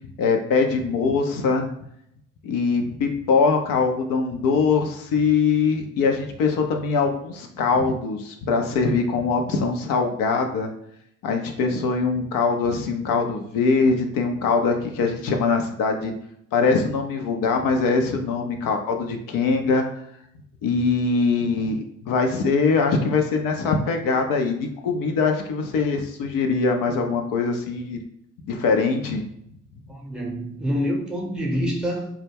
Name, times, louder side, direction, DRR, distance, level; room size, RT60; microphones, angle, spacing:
voice 1, 0.2-1.7 2.4-10.7 11.2-16.1 16.5-19.8 20.6-28.0 28.4-29.2, left 4 dB, 50° left, 4 dB, 0.5 m, -22 dB
voice 2, 29.9-32.1, equal, ahead, -1 dB, 0.8 m, -26 dB
2.2 x 2.1 x 3.3 m, 0.73 s
figure-of-eight pair, 50°, 43 cm